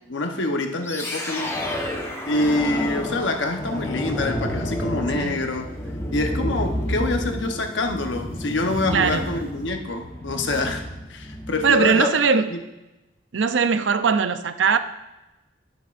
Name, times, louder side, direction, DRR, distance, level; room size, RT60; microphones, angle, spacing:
voice 1, 0.1-1.9 2.3-5.7 6.1-10.8 11.1-12.1 12.5-12.6, left 2 dB, 85° left, 1.0 m, -26 dB
sound 1, 0.8-12.0, equal, 15° left, 1.1 m, -30 dB
sound 2, 3.6-3.9 4.8-5.3 5.6-9.9 10.5-10.7, right 1 dB, 30° right, 0.7 m, -45 dB
voice 2, 8.9-9.3 11.6-12.5 13.3-14.8, right 5 dB, 85° right, 0.6 m, -20 dB
16.5 x 6.1 x 2.5 m
head